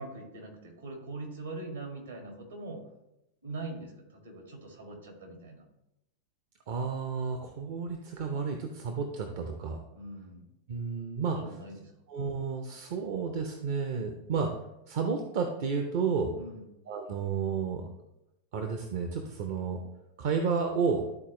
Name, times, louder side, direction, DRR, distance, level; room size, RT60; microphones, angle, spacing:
voice 1, 0.0-2.8 3.4-5.7 9.9-10.4 11.4-11.9 16.3-16.6, right 2 dB, 70° right, 1 dB, 2.0 m, -42 dB
voice 2, 6.7-9.8 10.7-11.4 12.1-14.5 14.9-16.3 16.9-17.9 18.5-19.8 20.2-21.0, right 5 dB, 50° right, 4 dB, 0.7 m, -31 dB
12.0 x 4.2 x 3.1 m, 0.89 s
figure-of-eight pair, 90°, 0 cm